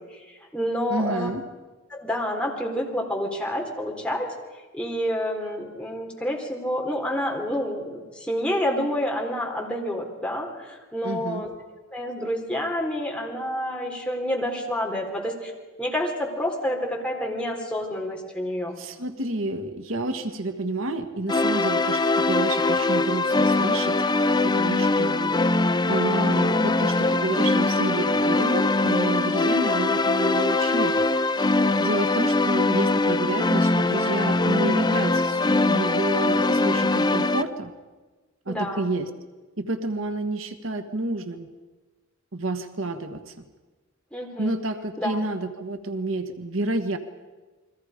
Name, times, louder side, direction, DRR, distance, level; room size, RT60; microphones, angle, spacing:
voice 1, 0.3-1.3 1.9-4.3 4.7-11.5 11.9-15.5 15.8-18.7 38.5-38.9 44.1-44.5 45.0-45.2, equal, 5° left, -1 dB, 3.8 m, -28 dB
voice 2, 0.9-1.4 11.0-11.4 18.8-24.0 24.4-37.7 38.4-39.1 39.6-41.5 42.3-43.4 44.4-47.0, right 2 dB, 75° right, 7 dB, 1.5 m, -30 dB
sound 1, 21.3-37.4, left 2 dB, 20° left, 0.6 m, -22 dB
29.5 x 22.5 x 5.1 m, 1.3 s
head